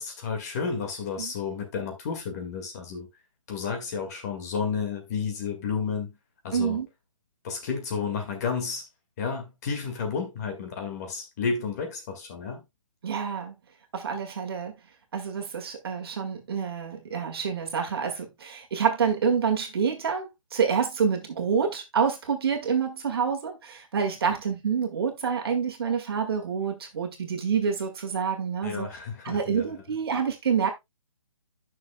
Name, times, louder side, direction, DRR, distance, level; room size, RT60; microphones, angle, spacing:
voice 1, 0.0-3.1 3.5-6.2 6.4-6.8 7.4-8.9 9.2-12.6 28.6-29.8, left 5 dB, 30° left, 1.9 m, -31 dB
voice 2, 6.5-6.9 13.0-13.5 13.9-14.7 15.1-28.9 29.2-30.7, right 6 dB, 45° right, 1.8 m, -27 dB
11.0 x 6.4 x 2.2 m
hypercardioid pair, 160°, 17 cm